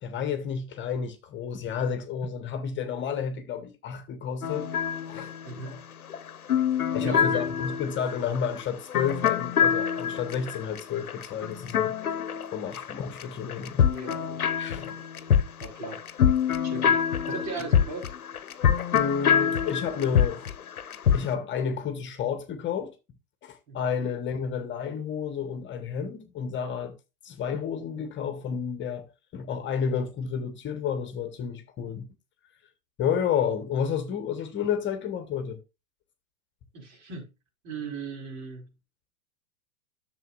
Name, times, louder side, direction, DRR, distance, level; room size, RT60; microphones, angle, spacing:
voice 1, 0.0-4.7 5.1-5.3 5.6-5.8 6.9-12.0 12.5-13.9 14.6-15.0 18.9-20.5 21.1-22.9 23.4-26.9 27.2-32.1 33.0-35.6, left 7 dB, 25° left, 1.3 m, -31 dB
sound 1, 4.4-13.2 13.5-21.3, left 8 dB, 85° left, 1.0 m, -26 dB
voice 2, 5.4-5.8 7.0-7.5 13.9-14.6 15.6-16.0 16.6-17.0 17.3-18.1 23.7-23.8 36.7-37.3 37.6-38.7, right 4 dB, 50° right, 4.1 m, -37 dB
11.0 x 7.2 x 2.5 m
hypercardioid pair, 105°, 42 cm